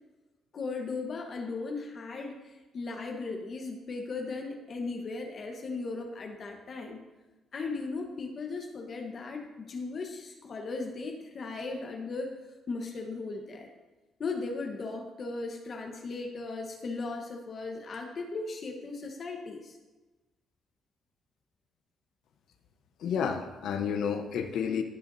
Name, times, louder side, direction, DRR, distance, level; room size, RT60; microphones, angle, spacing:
voice 1, 0.5-7.0 7.5-12.3 12.7-13.7 14.2-19.8, left 3 dB, 50° left, 3 dB, 1.2 m, -37 dB
voice 2, 23.0-24.8, left 7 dB, 75° left, 6 dB, 0.9 m, -30 dB
16.5 x 7.0 x 2.7 m, 1.1 s
cardioid pair, 90°, 0 cm